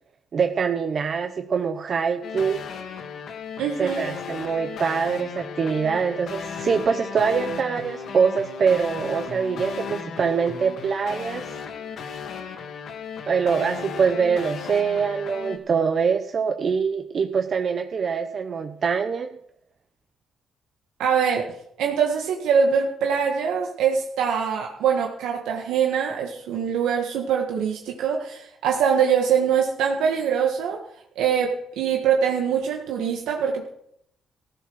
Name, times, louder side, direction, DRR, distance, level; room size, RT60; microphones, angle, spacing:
voice 1, 0.3-2.6 3.8-11.5 13.3-19.4, right 6 dB, 50° right, 7 dB, 0.9 m, -24 dB
sound 1, 2.2-15.6, left 6 dB, 65° left, 1.9 m, -35 dB
voice 2, 3.6-4.1 21.0-21.5 21.8-30.8 31.1-33.7, right 7 dB, 90° right, 1 dB, 1.7 m, -23 dB
14.5 x 8.5 x 6.3 m, 0.72 s
cardioid pair, 90°, 0 cm